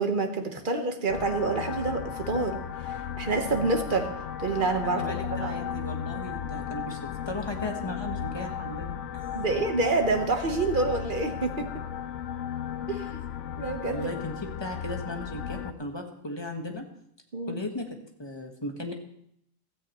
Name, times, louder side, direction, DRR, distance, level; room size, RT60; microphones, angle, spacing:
voice 1, 0.0-4.1 4.4-5.0 5.4-5.6 9.3-11.7 12.9-13.2 13.6-14.1 17.3-17.6, right 3 dB, 45° right, 5 dB, 1.3 m, -28 dB
sound 1, 1.1-15.7, left 9 dB, 80° left, 1.0 m, -35 dB
voice 2, 4.8-7.0 7.2-9.3 13.9-16.8 17.5-18.9, left 1 dB, 20° left, 3 dB, 1.4 m, -36 dB
16.0 x 13.5 x 3.1 m, 0.72 s
omnidirectional pair, 1.2 m